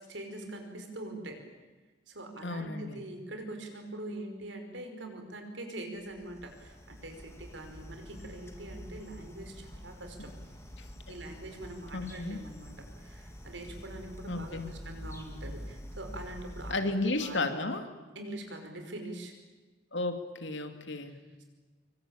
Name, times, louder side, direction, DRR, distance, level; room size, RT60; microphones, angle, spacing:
voice 1, 0.1-1.4 2.1-10.3 11.1-16.8 17.2-17.4 18.2-19.3 21.0-21.4, right 1 dB, 80° right, 5 dB, 5.4 m, -43 dB
voice 2, 2.4-3.0 10.8-10.9 11.9-12.4 14.3-14.8 16.7-17.8 19.9-21.1, left 2 dB, 75° left, 7 dB, 2.9 m, -33 dB
sound 1, 6.0-16.7, equal, 15° left, 3.1 m, -46 dB
26.0 x 24.0 x 9.0 m, 1.3 s
head